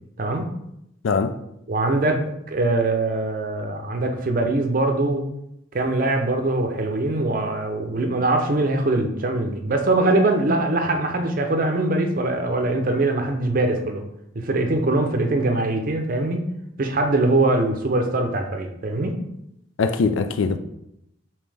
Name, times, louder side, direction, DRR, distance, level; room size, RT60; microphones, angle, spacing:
voice 1, 0.2-0.5 1.7-5.2 5.7-14.0 14.4-16.5 16.8-19.2, right 2 dB, 45° right, 0.5 m, -22 dB
voice 2, 1.0-1.3 19.8-20.6, left 4 dB, 90° left, 0.4 m, -21 dB
5.2 x 2.8 x 3.4 m
head